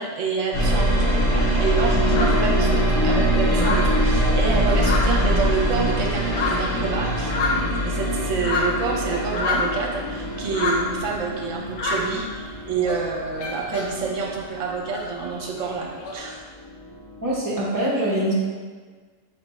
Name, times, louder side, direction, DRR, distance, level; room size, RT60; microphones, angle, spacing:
voice 1, 0.0-16.4, right 5 dB, 70° right, -1 dB, 1.0 m, -28 dB
sound 1, 0.5-16.3 16.6-17.4, equal, 25° left, 1.0 m, -23 dB
sound 2, 1.1-3.1 3.4-5.7 6.0-9.9 10.3-11.1 11.7-12.4 12.7-14.1 14.4-16.1, left 3 dB, 60° left, 0.9 m, -29 dB
voice 2, 17.2-18.3, right 1 dB, 20° right, -7 dB, 0.8 m, -23 dB
3.3 x 3.3 x 4.1 m, 1.5 s
omnidirectional pair, 1.4 m